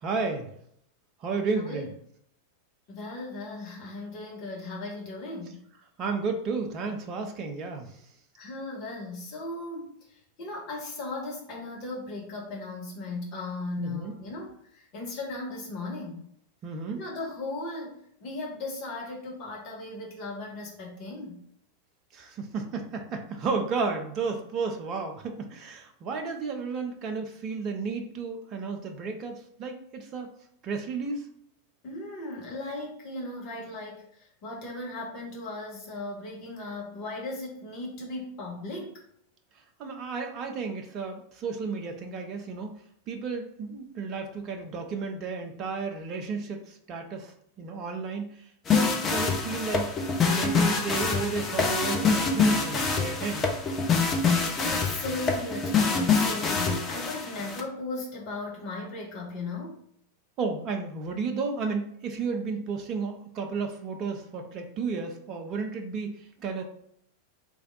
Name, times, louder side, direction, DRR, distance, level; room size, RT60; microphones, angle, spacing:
voice 1, 0.0-0.5 1.2-1.9 6.0-7.9 13.8-14.1 16.6-17.0 22.1-30.3 30.6-31.3 39.8-42.8 43.1-49.9 50.3-53.6 60.4-66.6, right 4 dB, 35° right, 4 dB, 0.6 m, -32 dB
voice 2, 1.5-1.9 2.9-5.6 8.4-16.2 16.9-21.4 31.8-34.0 34.4-39.0 54.6-59.8, left 2 dB, 40° left, -2 dB, 1.2 m, -37 dB
sound 1, 48.7-57.6, left 5 dB, 25° left, 0.6 m, -26 dB
3.2 x 2.5 x 3.9 m, 0.70 s
figure-of-eight pair, 90°, 0 cm